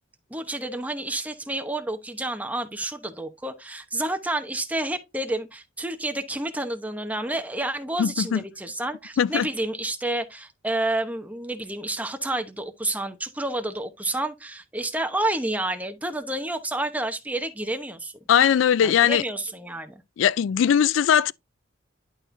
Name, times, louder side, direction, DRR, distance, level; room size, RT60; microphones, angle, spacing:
voice 1, 0.3-18.1 18.8-20.0, right 1 dB, 10° right, 0.9 m, -29 dB
voice 2, 8.0-8.4 9.2-9.5 18.3-19.2 20.2-21.3, left 8 dB, 75° left, 0.3 m, -20 dB
11.0 x 4.3 x 2.6 m
head